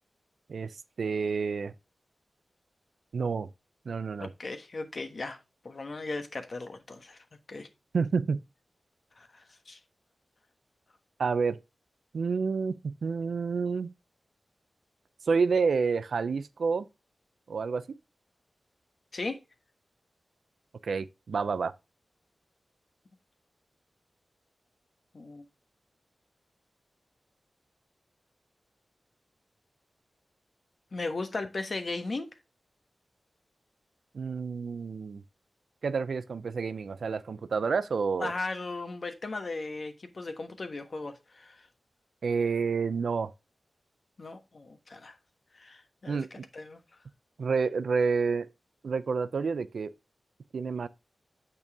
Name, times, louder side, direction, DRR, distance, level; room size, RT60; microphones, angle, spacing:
voice 1, 0.5-1.7 3.1-3.5 3.9-4.3 7.9-8.4 11.2-11.6 12.1-13.9 15.3-16.9 17.5-17.8 20.8-21.7 34.1-35.2 35.8-38.3 42.2-43.3 46.1-46.4 47.4-48.5 48.8-49.9 50.5-50.9, right 5 dB, 80° right, 0.5 m, -29 dB
voice 2, 4.2-5.4 5.6-7.2 7.5-7.7 9.2-9.8 19.1-19.4 25.1-25.4 30.9-32.3 38.2-41.6 44.2-45.1 45.5-46.8, left 3 dB, 55° left, 1.2 m, -37 dB
6.9 x 5.4 x 3.5 m
cardioid pair, 55°, 0 cm